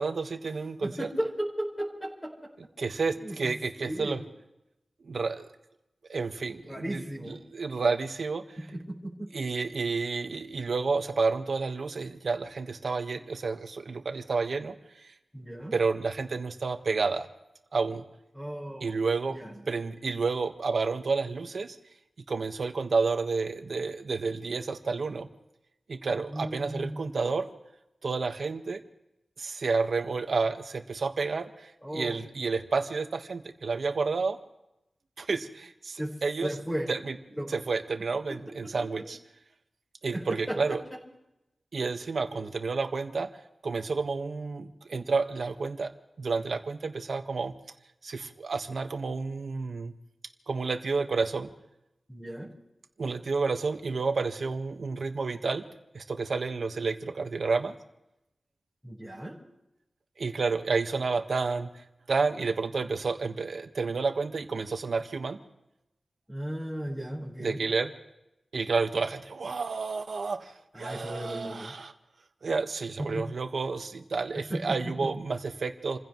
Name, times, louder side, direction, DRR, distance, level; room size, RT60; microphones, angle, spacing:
voice 1, 0.0-1.1 2.8-4.2 5.1-5.5 6.1-7.0 7.5-8.5 9.3-14.7 15.7-17.3 17.7-18.0 18.8-19.4 19.7-21.7 22.3-25.3 25.9-27.5 28.0-28.8 29.4-31.5 31.9-34.4 35.2-36.5 36.9-37.2 37.5-39.2 40.0-40.8 41.7-43.3 43.6-45.9 46.2-47.5 48.0-49.9 50.5-51.5 53.0-55.6 55.9-57.7 60.2-61.7 62.1-65.4 67.4-67.9 68.5-70.5 70.8-71.9 72.4-76.0, right 4 dB, 70° right, 7 dB, 1.4 m, -30 dB
voice 2, 0.8-2.5 3.2-4.2 6.7-7.4 8.6-9.3 15.3-15.7 18.3-18.9 19.3-19.5 26.3-27.2 31.8-32.2 36.0-36.1 36.4-36.9 37.3-37.6 38.3-39.0 40.1-40.8 42.3-42.5 52.1-52.5 58.8-59.4 66.3-67.6 70.7-71.7 73.0-73.2 74.5-75.1, right 1 dB, 5° left, -5 dB, 4.7 m, -36 dB
29.0 x 16.0 x 3.1 m, 0.88 s
wide cardioid pair, 100°, 0 cm